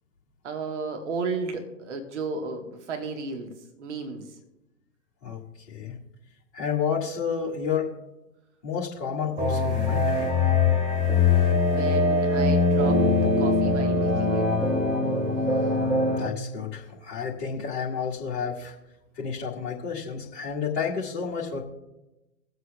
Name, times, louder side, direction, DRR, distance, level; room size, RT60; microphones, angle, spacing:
voice 1, 0.4-4.3 11.5-13.1 13.4-14.5, right 4 dB, 45° right, 4 dB, 1.5 m, -33 dB
voice 2, 6.5-7.9 8.6-10.0 16.1-18.8 19.2-21.6, left 6 dB, 40° left, -7 dB, 1.8 m, -30 dB
sound 1, 9.4-16.3, left 3 dB, 10° right, 1.8 m, -22 dB
22.5 x 8.0 x 2.3 m, 0.97 s
figure-of-eight pair, 125°, 47 cm